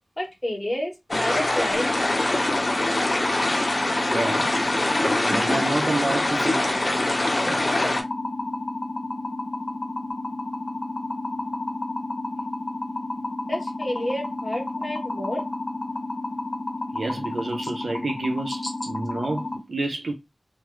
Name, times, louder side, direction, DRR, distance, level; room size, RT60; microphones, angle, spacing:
voice 1, 0.2-1.9 13.5-15.4 17.6-17.7, left 1 dB, 15° left, 1.2 m, -29 dB
sound 1, 1.1-8.0, left 1 dB, 40° left, 0.7 m, -24 dB
sound 2, 1.7-19.6, left 2 dB, 80° left, 0.6 m, -31 dB
voice 2, 4.1-4.6 5.0-6.7 7.4-7.7 16.9-20.1, right 2 dB, 75° right, 0.4 m, -29 dB
3.0 x 2.3 x 3.0 m
wide cardioid pair, 75°, 0 cm